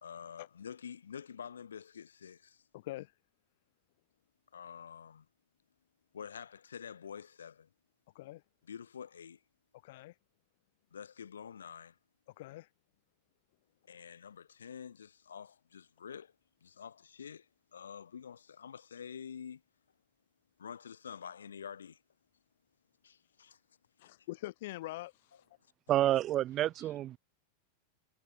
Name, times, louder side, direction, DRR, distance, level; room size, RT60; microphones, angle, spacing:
voice 1, 0.0-2.6 4.5-5.3 6.1-7.7 8.6-9.4 10.9-12.0 13.8-16.3 16.6-19.6 20.6-22.0 23.0-23.6 25.3-25.4 26.8-26.9, left 7 dB, 70° left, 1.9 m, -47 dB
voice 2, 2.7-3.1 8.2-8.4 9.8-10.1 12.4-12.7 24.0-25.1, left 17 dB, 55° left, 1.9 m, -43 dB
voice 3, 25.9-27.2, right 13 dB, 30° right, 0.8 m, -29 dB
figure-of-eight pair, 90°, 0 cm